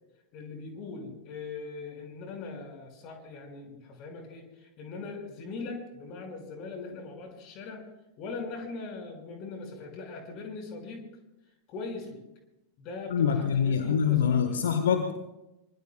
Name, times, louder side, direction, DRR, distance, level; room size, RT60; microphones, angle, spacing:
voice 1, 0.3-7.9 8.2-11.0 11.7-12.2 12.8-14.8, left 3 dB, 40° left, 3 dB, 5.3 m, -40 dB
voice 2, 13.1-15.1, left 7 dB, 65° left, 8 dB, 1.2 m, -25 dB
24.5 x 24.5 x 2.3 m, 0.95 s
figure-of-eight pair, 90°, 0 cm